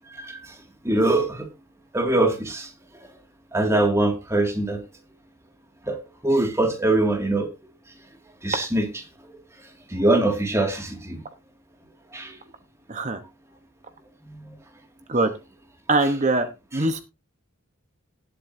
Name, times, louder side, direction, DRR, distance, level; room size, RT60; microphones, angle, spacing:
voice 1, 0.1-0.5 0.8-1.5 1.9-2.7 3.5-4.8 5.9-6.0 6.2-7.5 8.4-9.0 9.9-11.2 12.1-12.3 14.3-14.4 16.0-16.2 16.7-16.9, right 2 dB, 15° right, 2.1 m, -23 dB
voice 2, 15.9-16.5 16.7-17.0, right 2 dB, 35° right, 1.0 m, -22 dB
18.5 x 7.7 x 2.7 m
head